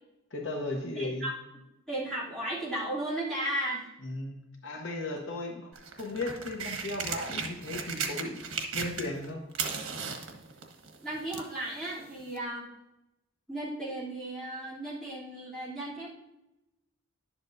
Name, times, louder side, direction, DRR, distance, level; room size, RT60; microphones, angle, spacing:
voice 1, 0.3-1.3 4.0-4.4 4.6-5.7 6.0-8.4 8.7-9.4, left 2 dB, 60° left, 1 dB, 1.0 m, -35 dB
voice 2, 0.9-1.3 1.9-3.9 11.0-12.7 13.5-16.1, right 1 dB, ahead, -10 dB, 2.9 m, -35 dB
sound 1, 5.7-9.3 9.5-11.6 12.4-12.5, right 5 dB, 85° right, 1.1 m, -36 dB
11.0 x 7.4 x 2.6 m, 0.93 s
head